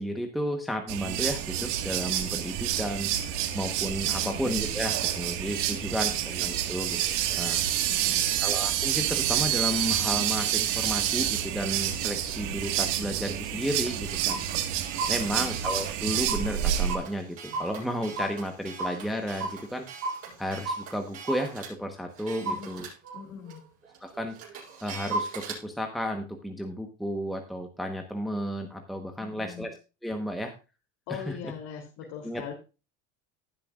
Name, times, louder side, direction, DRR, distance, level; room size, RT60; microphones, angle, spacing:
voice 1, 0.0-7.6 8.4-14.4 15.1-19.9 20.4-22.9 24.0-29.7 30.0-30.5 31.1-31.4 32.2-32.5, equal, ahead, 3 dB, 1.1 m, -33 dB
sound 1, 0.9-17.0, right 11 dB, 70° right, 1.8 m, -28 dB
voice 2, 4.1-4.4 5.9-6.1 7.9-8.3 15.2-15.6 22.4-22.9 23.1-23.6 29.2-29.7 31.1-32.5, left 8 dB, 65° left, 0 dB, 3.2 m, -41 dB
Clock, 11.7-12.0 12.6-12.7 12.9-13.0 13.4-13.5 13.7-21.7 22.2-25.6, right 3 dB, 40° right, 6.9 m, -36 dB
19.0 x 6.8 x 2.4 m, 0.30 s
supercardioid pair, 135°, 37 cm